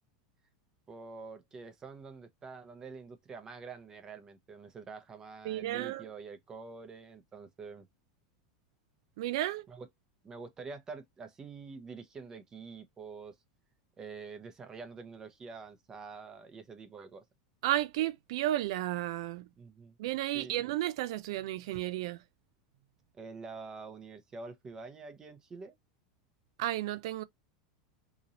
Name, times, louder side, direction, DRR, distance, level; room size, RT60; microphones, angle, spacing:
voice 1, 0.9-7.9 9.7-9.9 10.2-13.3 14.0-17.2 19.6-20.0 20.3-20.6 23.2-25.8, right 4 dB, 20° right, 0.7 m, -46 dB
voice 2, 5.5-6.1 9.2-9.7 17.6-19.5 20.0-22.2 26.6-27.2, right 14 dB, 70° right, 0.3 m, -33 dB
2.9 x 2.6 x 4.0 m
supercardioid pair, 125°, 3 cm